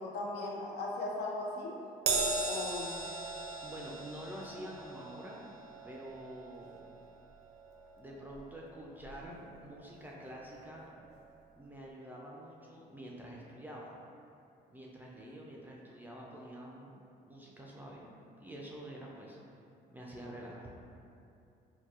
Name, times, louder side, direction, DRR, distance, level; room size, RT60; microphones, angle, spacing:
voice 1, 0.0-1.7 2.5-3.0, left 2 dB, 75° left, -2 dB, 0.6 m, -38 dB
Crash cymbal, 2.1-8.7 9.0-9.3 10.3-10.4, right 3 dB, 75° right, 0.4 m, -38 dB
voice 2, 3.6-5.5 5.8-6.8 8.0-11.2 11.5-13.9 14.7-16.9 17.3-19.4 19.9-20.7, equal, 10° right, -4 dB, 0.3 m, -47 dB
4.0 x 2.2 x 2.4 m, 2.6 s
cardioid pair, 110°, 17 cm